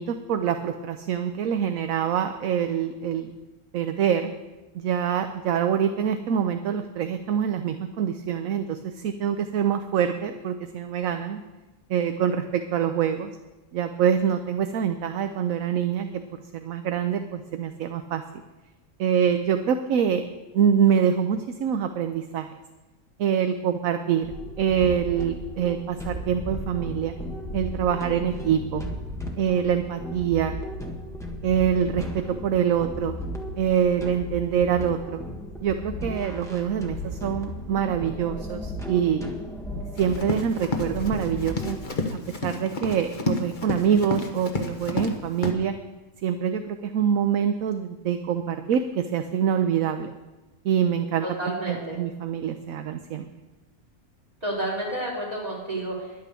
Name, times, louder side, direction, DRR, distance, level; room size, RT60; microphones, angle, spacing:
voice 1, 0.0-3.3 3.7-4.3 4.7-11.4 11.9-13.3 13.7-16.1 16.5-18.2 19.0-20.2 20.5-22.5 23.2-24.3 24.6-27.1 27.5-28.8 29.4-30.6 31.4-33.2 33.6-35.2 35.6-39.3 40.0-41.8 42.4-45.7 46.2-50.1 50.6-51.3 51.7-53.3, right 8 dB, 70° right, 7 dB, 1.0 m, -25 dB
sound 1, 24.2-41.8, left 1 dB, ahead, 1.4 m, -35 dB
Run, 40.0-45.1 45.4-45.5, left 2 dB, 35° left, 1.1 m, -30 dB
voice 2, 51.2-52.0 54.4-56.2, right 1 dB, 25° right, -6 dB, 5.0 m, -30 dB
11.0 x 9.2 x 6.8 m, 1.1 s
omnidirectional pair, 1.6 m